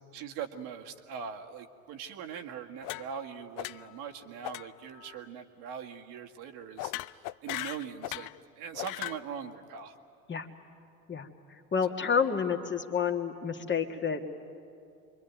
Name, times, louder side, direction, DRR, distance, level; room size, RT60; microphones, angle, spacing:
voice 1, 0.1-8.3 8.6-10.0, right 7 dB, 60° right, 3 dB, 1.8 m, -41 dB
sound 1, 2.8-3.3 3.6-4.0 4.4-4.7 4.9-5.2 6.8-8.4 8.7-9.2, left 17 dB, 50° left, 0.6 m, -38 dB
voice 2, 11.1-14.2, left 6 dB, 25° left, 4 dB, 2.0 m, -30 dB
27.0 x 23.0 x 9.4 m, 2.5 s
figure-of-eight pair, 65°, 43 cm